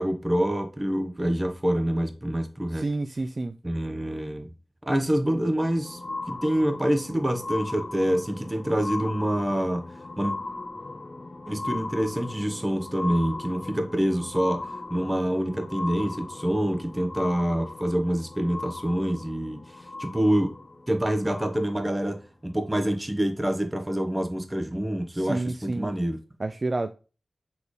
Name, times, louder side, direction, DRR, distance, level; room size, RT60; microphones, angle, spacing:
voice 1, 0.0-2.9 3.6-4.5 4.9-6.0 6.3-9.9 10.2-10.4 11.5-20.5 20.9-26.2, equal, 20° right, 1.0 m, -26 dB
voice 2, 2.7-3.6 25.1-25.9 26.4-26.9, right 2 dB, 50° right, 0.3 m, -29 dB
sound 1, 5.2-22.0 22.7-22.8, left 3 dB, 45° left, 0.4 m, -38 dB
4.3 x 3.3 x 3.1 m
cardioid pair, 40°, 0 cm